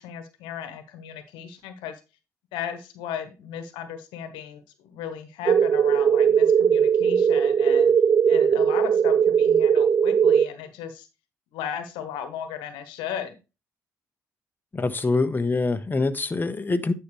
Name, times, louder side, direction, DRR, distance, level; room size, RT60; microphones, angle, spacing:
voice 1, 0.0-2.0 2.5-7.9 8.3-11.1 11.5-13.4, left 8 dB, 80° left, 1.2 m, -36 dB
sound 1, 5.5-10.4, right 7 dB, 45° right, 0.6 m, -19 dB
voice 2, 14.7-16.9, left 3 dB, 25° left, 1.1 m, -24 dB
9.8 x 5.7 x 3.2 m
hypercardioid pair, 50°, 8 cm